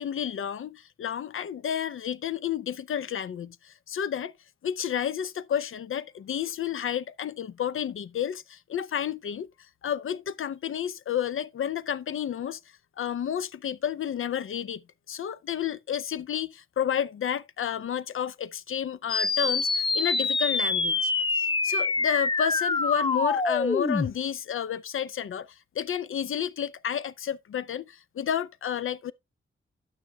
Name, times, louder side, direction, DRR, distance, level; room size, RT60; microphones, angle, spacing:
voice 1, 0.0-4.3 4.6-9.5 9.8-12.6 13.0-14.8 15.1-29.1, left 9 dB, 80° left, 0.6 m, -31 dB
sound 1, 19.1-24.1, left 3 dB, 25° left, 0.6 m, -26 dB
11.5 x 9.4 x 2.3 m
wide cardioid pair, 160°, 21 cm